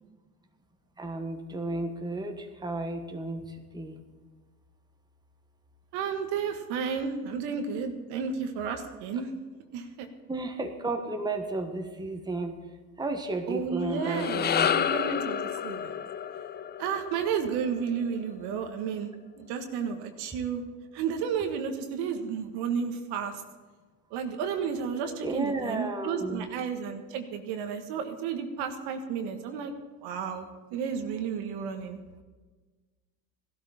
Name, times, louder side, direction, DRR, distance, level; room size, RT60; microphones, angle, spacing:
voice 1, 1.0-3.5 3.7-4.0 10.3-12.6 13.0-14.7 25.2-26.5, right 2 dB, 10° right, 4 dB, 1.5 m, -33 dB
voice 2, 5.9-9.3 9.7-10.1 13.5-16.0 16.8-19.1 19.4-20.6 20.9-23.3 24.1-29.7 30.0-30.5 30.7-32.0, right 6 dB, 60° right, 6 dB, 1.7 m, -32 dB
sound 1, 13.8-18.3, left 8 dB, 25° left, 0.5 m, -30 dB
16.0 x 12.5 x 4.3 m, 1.3 s
hypercardioid pair, 80°, 44 cm